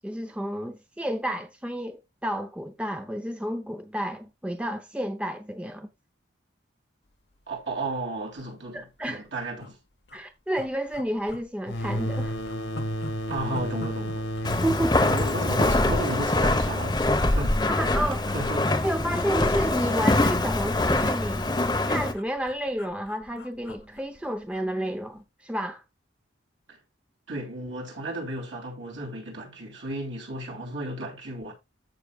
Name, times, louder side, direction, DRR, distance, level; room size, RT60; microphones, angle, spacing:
voice 1, 0.0-5.9 8.7-9.3 10.1-12.4 14.6-15.1 17.7-18.2 18.8-21.5 21.9-25.8, equal, 5° right, 0.6 m, -31 dB
voice 2, 7.5-8.8 9.1-9.8 13.3-14.3 15.0-17.6 18.0-18.8 26.7-26.8 27.3-31.5, right 1 dB, 75° right, 3.2 m, -34 dB
sound 1, 7.6-7.7 8.0-8.1 8.3-8.5 9.0-9.7 10.0-10.2 10.5-11.5 11.8-16.0 16.3-16.6 17.2-17.9 18.2-18.4 18.7-19.8 20.1-24.7 25.0-25.2, left 2 dB, 60° left, 0.9 m, -44 dB
sound 2, 11.7-17.1, equal, 80° left, 1.8 m, -33 dB
Walk footsteps, 14.4-22.1, left 2 dB, 20° left, 0.9 m, -24 dB
14.0 x 6.0 x 2.3 m
head